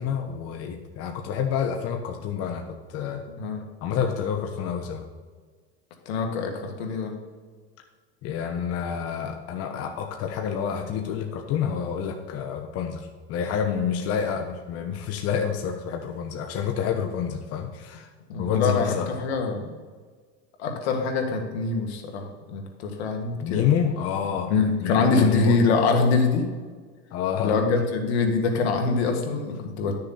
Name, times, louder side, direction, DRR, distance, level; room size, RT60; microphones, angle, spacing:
voice 1, 0.0-3.2 3.8-5.1 8.2-18.1 18.4-19.1 23.4-24.5 24.8-25.6 27.1-27.5, left 8 dB, 50° left, 3 dB, 1.2 m, -28 dB
voice 2, 6.1-7.2 18.3-19.7 20.6-23.7 24.5-26.5 27.4-29.9, left 4 dB, 85° left, 3 dB, 2.0 m, -24 dB
11.5 x 6.8 x 4.3 m, 1.5 s
supercardioid pair, 120°, 32 cm